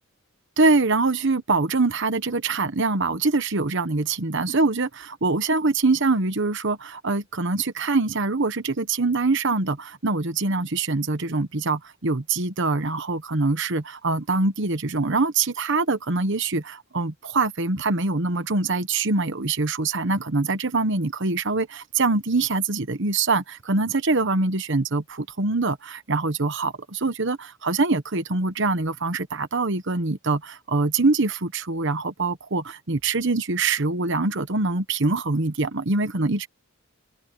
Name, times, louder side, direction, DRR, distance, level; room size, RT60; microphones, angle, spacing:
voice 1, 0.6-36.5, right 3 dB, 55° right, 1.2 m, -24 dB
head